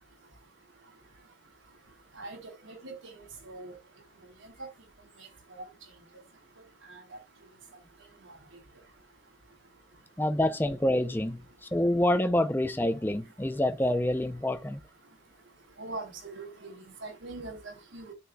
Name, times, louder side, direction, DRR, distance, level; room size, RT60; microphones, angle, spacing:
voice 1, 2.6-3.0 3.4-3.7 5.5-5.6 6.9-7.0 15.8-18.1, right 2 dB, 80° right, 3.6 m, -41 dB
voice 2, 10.2-11.4 11.7-14.8, left 1 dB, 10° left, 0.5 m, -27 dB
12.5 x 4.4 x 2.3 m
head